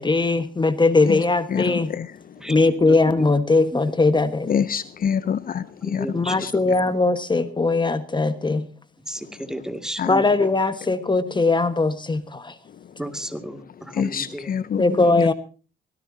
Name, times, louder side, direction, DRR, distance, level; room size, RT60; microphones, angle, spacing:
voice 1, 0.0-1.9 2.5-4.6 5.2-5.3 6.1-8.7 10.1-12.6 14.8-15.3, left 3 dB, 25° left, 1.4 m, -20 dB
voice 2, 1.5-2.1 4.5-6.1 6.3-6.5 10.0-10.1 13.9-15.3, left 7 dB, 45° left, 0.7 m, -26 dB
voice 3, 2.4-3.0 3.7-3.8 5.8-7.0 9.1-10.5 13.0-14.5, right 1 dB, 5° right, 2.4 m, -34 dB
23.5 x 17.5 x 2.8 m
cardioid pair, 90°, 20 cm